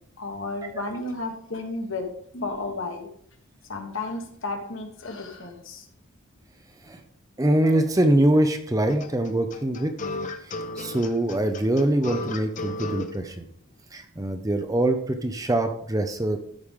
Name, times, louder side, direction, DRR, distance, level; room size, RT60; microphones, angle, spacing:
voice 1, 0.2-3.1 3.7-5.9, left 3 dB, 60° left, 4 dB, 1.4 m, -33 dB
voice 2, 7.4-9.9 10.5-13.5 13.9-16.4, right 1 dB, 15° right, 7 dB, 0.5 m, -23 dB
sound 1, 8.9-13.1, left 2 dB, 35° left, 0.6 m, -34 dB
13.0 x 5.0 x 3.6 m, 0.68 s
head